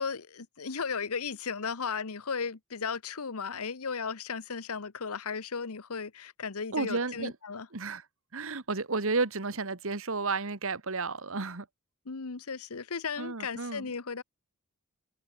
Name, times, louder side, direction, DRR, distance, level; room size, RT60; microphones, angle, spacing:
voice 1, 0.0-7.7 12.1-14.2, left 5 dB, 75° left, 1.0 m, -35 dB
voice 2, 6.7-7.3 7.7-8.0 8.3-11.7 13.2-13.9, right 3 dB, 60° right, 1.6 m, -32 dB
head